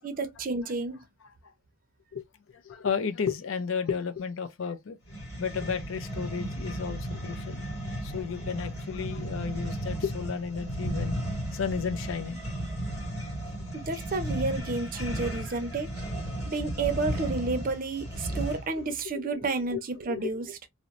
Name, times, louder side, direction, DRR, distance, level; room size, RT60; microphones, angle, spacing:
voice 1, 0.2-1.0 13.7-15.9 16.5-20.5, right 3 dB, 40° right, 0.5 m, -31 dB
voice 2, 2.1-5.0 5.4-7.6 8.0-12.5 14.9-15.6 18.7-18.8 19.1-19.4 19.7-19.8 20.1-20.3, left 6 dB, 70° left, 0.5 m, -33 dB
sound 1, 5.1-18.8, right 1 dB, 35° left, 1.6 m, -34 dB
2.8 x 2.0 x 2.4 m
head